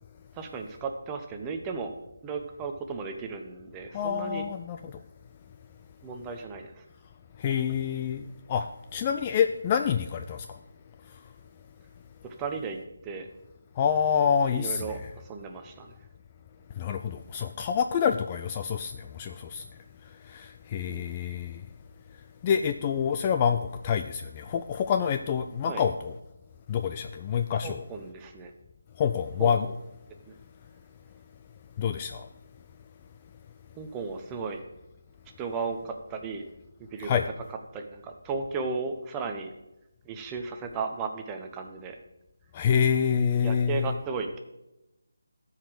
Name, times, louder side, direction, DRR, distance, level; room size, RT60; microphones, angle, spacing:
voice 1, 0.3-2.0 2.2-4.4 6.0-6.8 12.4-13.3 14.5-15.9 20.9-21.1 25.6-25.8 27.6-28.5 29.4-29.7 30.3-30.4 33.8-34.6 35.4-36.4 36.8-37.2 37.5-39.5 40.0-42.0 43.4-44.4, right 4 dB, 10° right, 4 dB, 0.8 m, -35 dB
voice 2, 3.9-5.0 7.4-10.6 13.8-15.0 16.8-19.7 20.2-21.6 22.4-26.1 26.7-27.8 29.0-29.7 31.8-32.3 37.0-37.2 42.5-43.9, left 7 dB, 20° left, 7 dB, 0.3 m, -27 dB
13.0 x 4.9 x 6.4 m, 0.92 s
figure-of-eight pair, 170°, 0 cm